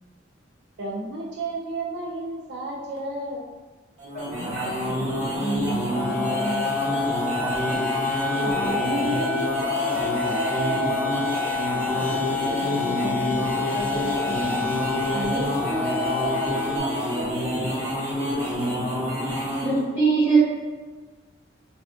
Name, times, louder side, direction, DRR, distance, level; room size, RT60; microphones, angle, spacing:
voice 1, 0.8-3.4 4.5-4.7 8.3-11.2 15.1-17.7, right 2 dB, 60° right, -4 dB, 0.4 m, -31 dB
sound 1, 4.0-19.8, equal, 35° right, 0.9 m, -28 dB
voice 2, 4.1-7.8 11.9-14.4, right 2 dB, 50° left, -3 dB, 0.6 m, -34 dB
sound 2, 5.9-16.8, left 6 dB, 10° left, 0.4 m, -29 dB
voice 3, 19.6-20.4, right 4 dB, 10° right, -14 dB, 0.8 m, -19 dB
3.2 x 2.3 x 2.5 m, 1.4 s
head